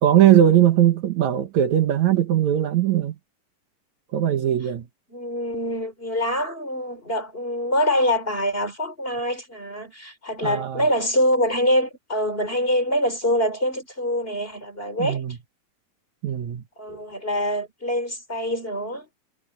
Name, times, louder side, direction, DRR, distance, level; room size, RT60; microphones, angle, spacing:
voice 1, 0.0-3.2 4.1-4.9 10.4-10.9 15.0-15.4 16.2-17.0, right 11 dB, 65° right, 2.5 m, -20 dB
voice 2, 5.1-15.2 16.8-19.1, equal, 15° left, 3.4 m, -25 dB
omnidirectional pair, 3.7 m